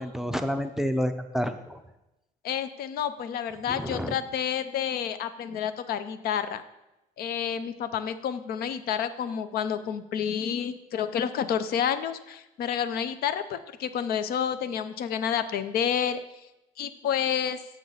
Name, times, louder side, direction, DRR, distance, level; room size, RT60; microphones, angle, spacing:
voice 1, 0.0-1.8 3.7-4.2, equal, 5° right, 8 dB, 0.5 m, -29 dB
voice 2, 2.4-6.6 7.2-16.2 16.8-17.6, left 8 dB, 65° left, 11 dB, 0.6 m, -29 dB
7.2 x 6.3 x 4.0 m, 0.96 s
cardioid pair, 110°, 17 cm